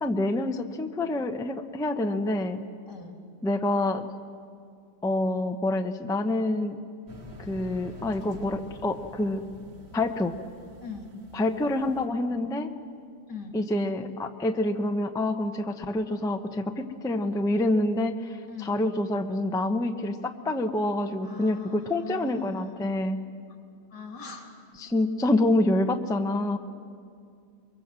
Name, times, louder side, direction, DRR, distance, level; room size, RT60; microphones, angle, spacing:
voice 1, 0.0-2.6 3.4-4.1 5.0-6.8 7.4-9.4 9.9-10.3 11.3-12.7 13.5-23.2 24.8-26.6, left 1 dB, 5° left, 6 dB, 0.5 m, -27 dB
sound 1, 7.1-12.0, equal, 90° right, 2.7 m, -47 dB
voice 2, 21.2-22.8 23.9-24.6, left 5 dB, 90° left, 2 dB, 3.5 m, -40 dB
23.5 x 23.5 x 7.5 m, 2.3 s
omnidirectional pair, 1.8 m